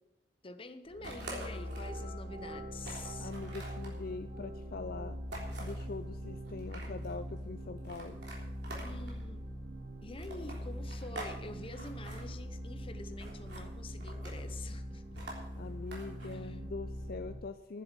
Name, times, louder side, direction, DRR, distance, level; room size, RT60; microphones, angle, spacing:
voice 1, 0.4-3.3 8.8-9.6 10.0-15.2 16.2-16.6, left 2 dB, 30° left, 10 dB, 0.8 m, -47 dB
sound 1, 0.9-17.3, equal, 45° right, 3.4 m, -42 dB
sound 2, 1.0-2.0 2.4-2.5 2.8-4.0 5.3-5.9 6.5-7.1 7.8-9.2 10.2-11.4 11.6-12.2 13.2-13.7 14.0-14.5 15.2-16.3, right 1 dB, 60° right, 3.4 m, -46 dB
voice 2, 3.2-5.2 5.6-8.2 15.6-17.8, left 4 dB, 50° left, 10 dB, 0.5 m, -43 dB
10.5 x 7.8 x 8.0 m, 1.0 s
head